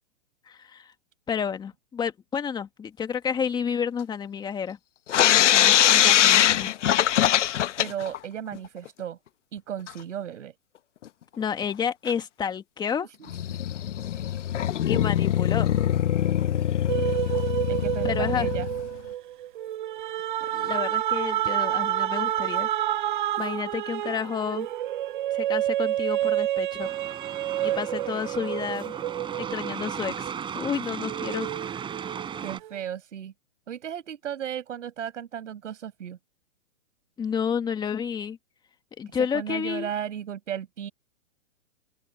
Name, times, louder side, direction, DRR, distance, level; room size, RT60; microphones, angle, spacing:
voice 1, 0.5-0.9 1.3-4.8 5.5-6.7 11.4-13.1 14.8-15.7 18.0-18.5 20.5-22.7 23.4-24.7 25.3-26.9 27.6-28.9 29.4-31.5 37.2-38.4 39.0-39.9, left 7 dB, 10° left, 1.8 m, -30 dB
sound 1, 5.1-8.2 8.5-8.6 8.8-8.9 9.9-10.0 11.0-11.1 11.6-11.7 12.1-12.2 13.3-18.9, left 11 dB, 65° left, 1.1 m, -22 dB
voice 2, 7.8-9.2 9.5-10.5 13.0-13.1 17.7-18.7 31.0-31.5 32.4-33.3 33.7-36.2 39.1-40.9, right 9 dB, 70° right, 6.5 m, -35 dB
sound 2, 16.9-30.6 31.1-32.7, right 13 dB, 40° right, 0.4 m, -29 dB
sound 3, 26.8-32.6, right 7 dB, 15° right, 4.4 m, -36 dB
open air
hypercardioid pair, 150°, 38 cm